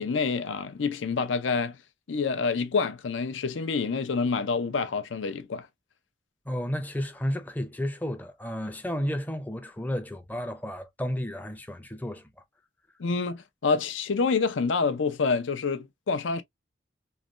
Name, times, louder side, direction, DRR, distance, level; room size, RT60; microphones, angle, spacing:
voice 1, 0.0-1.8 2.1-5.7 13.0-16.4, left 4 dB, 85° left, 0.5 m, -27 dB
voice 2, 6.5-12.3, equal, 10° left, 0.4 m, -32 dB
3.2 x 2.2 x 2.4 m
head